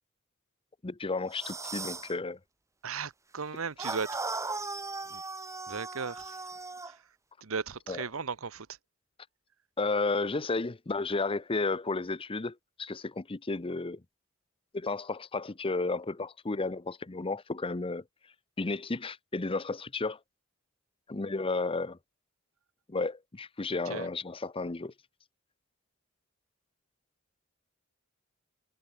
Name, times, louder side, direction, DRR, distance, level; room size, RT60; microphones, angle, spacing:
voice 1, 0.8-2.4 7.9-8.0 9.8-14.0 14.7-18.0 18.6-20.2 21.1-22.0 22.9-24.9, left 3 dB, 25° left, 0.7 m, -32 dB
sound 1, 1.3-2.1 3.8-6.9, right 3 dB, 15° right, 1.6 m, -37 dB
voice 2, 2.8-4.2 5.1-5.2 5.7-6.3 7.4-8.7 23.9-24.1, right 5 dB, 80° right, 1.1 m, -36 dB
head